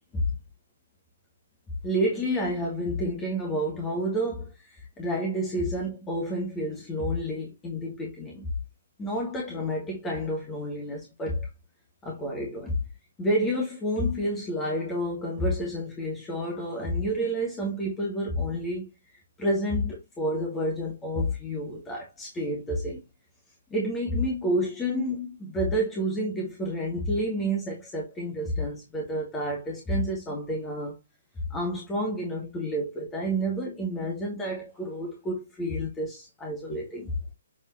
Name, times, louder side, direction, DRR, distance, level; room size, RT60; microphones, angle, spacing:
voice 1, 1.8-8.5 9.0-11.5 12.0-12.8 13.2-18.9 19.4-23.0 23.7-31.0 31.5-37.2, equal, 15° left, 2.7 m, -29 dB
7.9 x 5.4 x 3.0 m
figure-of-eight pair, 130°, 0 cm